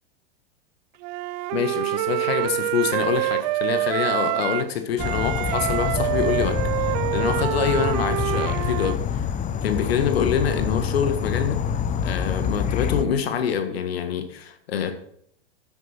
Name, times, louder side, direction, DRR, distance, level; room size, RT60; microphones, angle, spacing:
Wind instrument woodwind instrument, 1.0-4.7 5.0-9.0, right 18 dB, 45° right, 0.5 m, -26 dB
voice 1, 1.5-9.3 9.6-11.6 12.0-14.9, left 8 dB, 75° left, 8 dB, 1.7 m, -26 dB
Insect / Frog, 5.0-13.1, left 7 dB, 25° left, 0.9 m, -26 dB
10.0 x 9.0 x 4.4 m, 0.69 s
hypercardioid pair, 105°, 31 cm